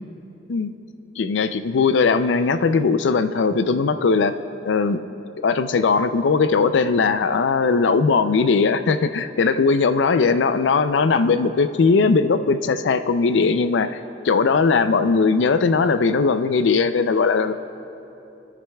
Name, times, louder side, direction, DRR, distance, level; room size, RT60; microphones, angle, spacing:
voice 1, 1.2-4.3 4.6-5.0 5.4-14.0 14.2-17.5, left 4 dB, 90° left, 11 dB, 0.4 m, -19 dB
26.0 x 9.9 x 2.3 m, 3.0 s
head